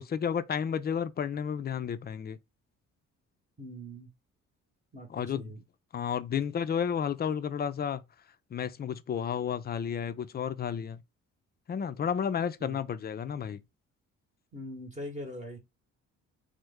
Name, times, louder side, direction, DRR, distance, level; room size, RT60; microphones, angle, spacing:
voice 1, 0.0-2.4 5.1-5.5 5.9-8.0 8.5-11.0 11.7-13.6, left 7 dB, 35° left, 0.4 m, -32 dB
voice 2, 3.6-4.1 4.9-5.6 14.5-15.6, equal, 25° right, 0.9 m, -42 dB
3.1 x 2.0 x 3.4 m
cardioid pair, 90°, 30 cm